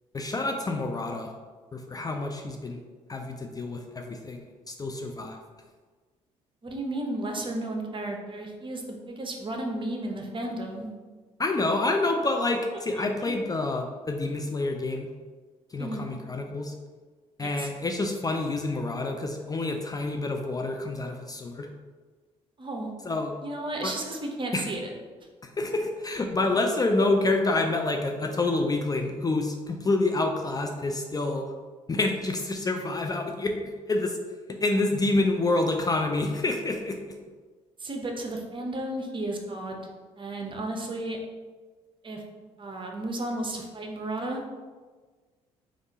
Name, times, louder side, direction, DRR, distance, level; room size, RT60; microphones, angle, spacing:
voice 1, 0.1-1.3 1.7-2.8 3.1-5.4 11.4-15.1 15.7-16.7 17.4-21.7 23.0-23.3 23.8-23.9 24.5-24.7 25.4-31.5 31.9-34.2 34.5-37.2, left 2 dB, 25° left, 3 dB, 0.4 m, -28 dB
voice 2, 6.6-10.9 13.0-13.1 15.8-16.1 17.4-17.7 22.6-22.9 23.4-24.9 37.8-39.9 40.2-41.2 42.0-42.2 42.6-44.4, right 1 dB, 35° right, 2 dB, 0.8 m, -33 dB
3.5 x 2.5 x 4.0 m, 1.4 s
hypercardioid pair, 55°, 15 cm